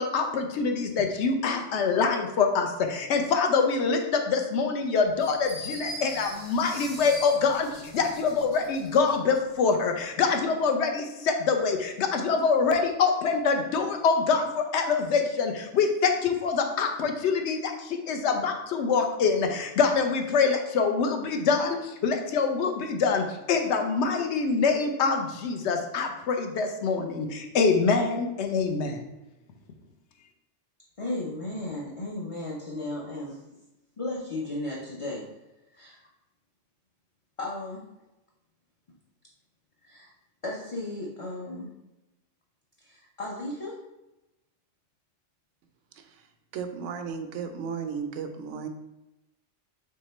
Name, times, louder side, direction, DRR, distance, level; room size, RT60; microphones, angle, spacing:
voice 1, 0.0-29.0, left 5 dB, 70° left, 5 dB, 0.9 m, -25 dB
sound 1, 5.2-9.2, left 1 dB, 90° left, 2.1 m, -41 dB
voice 2, 31.0-33.4 34.0-35.2 35.7-36.0 37.4-37.8 39.8-40.1 40.4-41.7 42.8-43.8, left 2 dB, 35° left, -4 dB, 0.5 m, -35 dB
voice 3, 45.9-46.3 46.5-48.7, right 6 dB, 90° right, 7 dB, 0.9 m, -35 dB
3.6 x 3.3 x 4.1 m, 0.96 s
omnidirectional pair, 1.2 m